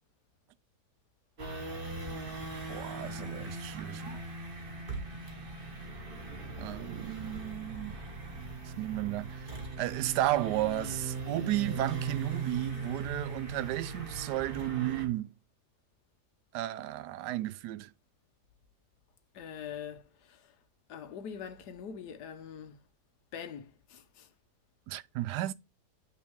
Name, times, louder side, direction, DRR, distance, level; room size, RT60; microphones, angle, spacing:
sound 1, 1.4-15.1, right 3 dB, 35° right, 1.7 m, -39 dB
voice 1, 2.7-4.2 6.6-8.0 8.8-9.5 9.8-15.3 16.5-17.9 24.9-25.5, right 15 dB, 80° right, 1.2 m, -33 dB
voice 2, 19.3-20.4 20.9-22.7 23.3-24.3, left 7 dB, 75° left, 1.5 m, -43 dB
9.0 x 3.6 x 3.5 m
omnidirectional pair, 1.8 m